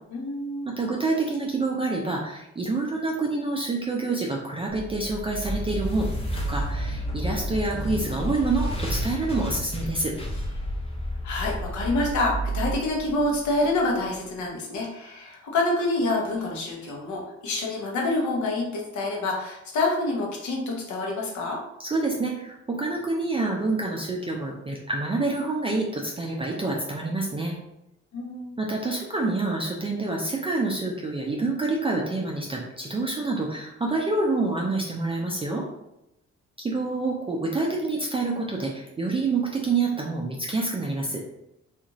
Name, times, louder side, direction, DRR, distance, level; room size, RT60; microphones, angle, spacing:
voice 1, 0.1-0.7 11.2-21.6 28.1-28.5, left 2 dB, 70° left, -1 dB, 0.9 m, -27 dB
voice 2, 0.8-10.1 21.8-27.6 28.6-35.6 36.6-41.2, right 3 dB, 20° right, -2 dB, 0.4 m, -27 dB
sound 1, 4.7-13.8, equal, 20° left, 0.7 m, -31 dB
2.4 x 2.4 x 2.9 m, 0.86 s
cardioid pair, 90°, 30 cm